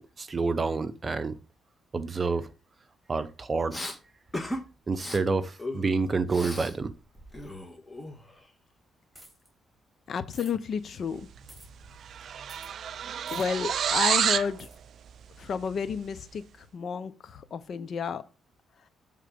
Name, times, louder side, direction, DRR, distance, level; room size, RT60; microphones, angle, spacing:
voice 1, 0.0-1.4 1.9-2.5 3.1-4.0 4.9-6.9, right 4 dB, 30° right, 0.8 m, -28 dB
Respiratory sounds, 3.7-4.0 4.3-4.6 4.9-5.2 5.6-6.8 7.0-8.5, left 1 dB, 10° left, 1.5 m, -37 dB
sound 1, 9.1-9.5 10.3-10.5 11.5-11.7 12.5-12.7 13.3-13.5 14.6-14.8, right 1 dB, 15° right, 3.4 m, -49 dB
voice 2, 10.1-11.2 13.3-14.7 15.4-16.4 16.7-18.2, left 6 dB, 55° left, 0.7 m, -31 dB
sound 2, 11.4-11.6 11.8-14.5, right 8 dB, 60° right, 0.4 m, -28 dB
7.6 x 3.7 x 5.2 m
cardioid pair, 90°, 0 cm